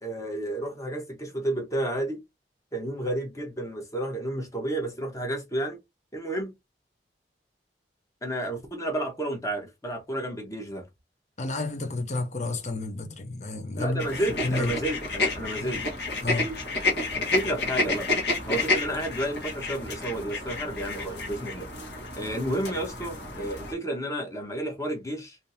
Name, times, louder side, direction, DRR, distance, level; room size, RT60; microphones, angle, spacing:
voice 1, 0.0-2.2 2.7-5.8 6.1-6.5 8.2-10.9 13.8-15.8 16.3-16.6 17.2-18.1 18.4-21.7 22.2-25.4, right 1 dB, 20° left, 1.0 m, -31 dB
voice 2, 11.4-14.1 14.4-14.7 16.2-16.5, left 2 dB, 40° left, 0.7 m, -30 dB
sound 1, 14.0-23.7, left 2 dB, 70° left, 1.4 m, -30 dB
3.6 x 2.7 x 2.6 m
head